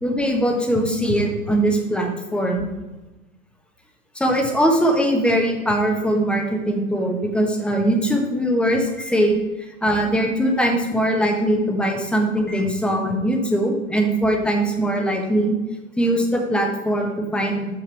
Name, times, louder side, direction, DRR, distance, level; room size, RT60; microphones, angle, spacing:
voice 1, 0.0-2.7 4.1-9.4 9.8-15.5 16.0-17.7, right 1 dB, 5° left, 2 dB, 1.1 m, -21 dB
6.5 x 6.2 x 4.6 m, 1.1 s
hypercardioid pair, 115°, 41 cm